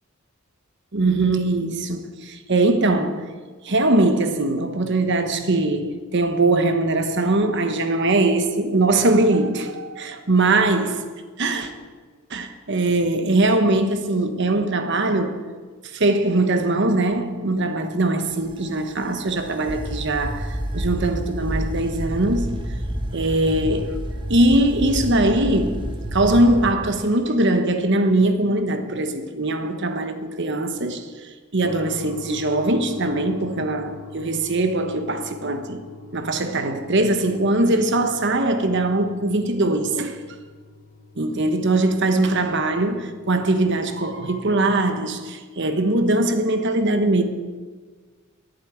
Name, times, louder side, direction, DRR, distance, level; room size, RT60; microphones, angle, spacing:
voice 1, 0.9-3.2 3.6-11.0 11.4-11.7 12.3-15.4 15.9-22.6 23.1-24.0 24.3-25.8 26.1-35.8 36.1-40.2 41.2-47.2, right 2 dB, 55° right, 1.1 m, -21 dB
sound 1, 18.2-26.7, right 1 dB, 20° right, 1.0 m, -29 dB
sound 2, 31.6-45.3, left 2 dB, 65° left, 0.8 m, -43 dB
11.5 x 8.3 x 9.3 m
head